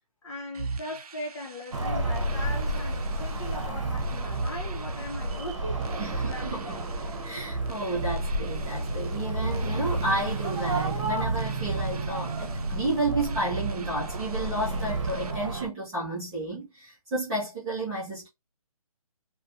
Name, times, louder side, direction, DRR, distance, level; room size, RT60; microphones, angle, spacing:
voice 1, 0.2-6.9, left 1 dB, 50° left, 0.8 m, -39 dB
sound 1, 0.5-15.3, right 4 dB, 80° right, 0.4 m, -37 dB
sound 2, 1.7-15.7, right 1 dB, 55° right, 0.9 m, -31 dB
voice 2, 6.0-7.0 7.2-18.3, right 2 dB, 5° right, 0.4 m, -32 dB
2.6 x 2.2 x 2.4 m
hypercardioid pair, 155°, 19 cm